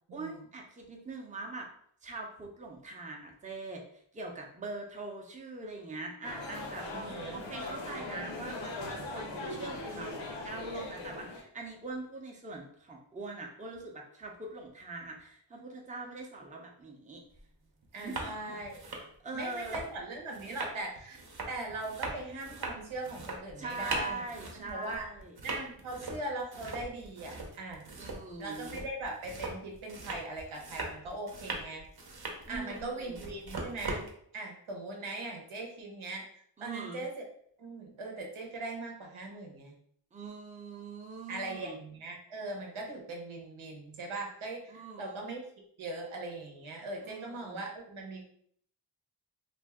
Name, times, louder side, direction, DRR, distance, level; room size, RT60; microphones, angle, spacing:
voice 1, 0.1-1.7 2.0-3.8 4.1-6.9 7.3-17.2 18.0-19.8 23.6-25.3 28.0-28.8 32.4-33.2 36.6-37.0 40.1-41.8 44.7-45.2 47.0-47.6, right 3 dB, 15° right, 0 dB, 0.6 m, -42 dB
sound 1, 6.2-11.4, left 2 dB, 65° left, 0.7 m, -40 dB
voice 2, 6.9-7.5 17.9-18.9 19.3-24.2 24.5-25.1 25.4-27.8 28.4-31.8 32.5-34.1 34.3-36.2 36.6-37.2 37.6-39.7 41.3-45.4 45.8-48.2, right 2 dB, 80° right, 1 dB, 0.9 m, -40 dB
sound 2, 17.3-17.4 17.8-18.3 18.6-34.1, right 2 dB, 50° right, 0.8 m, -41 dB
2.5 x 2.1 x 3.5 m, 0.64 s
cardioid pair, 60°, 48 cm